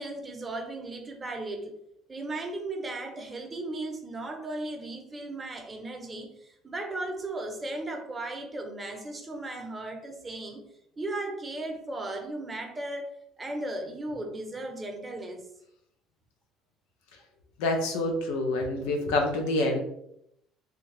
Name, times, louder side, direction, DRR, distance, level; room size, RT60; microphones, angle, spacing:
voice 1, 0.0-1.7 2.1-10.6 11.0-13.1 13.4-15.4, right 2 dB, 20° right, 4 dB, 0.7 m, -36 dB
voice 2, 17.6-19.8, left 2 dB, 85° left, 3 dB, 0.6 m, -27 dB
3.5 x 2.2 x 3.2 m, 0.76 s
supercardioid pair, 90°, 0 cm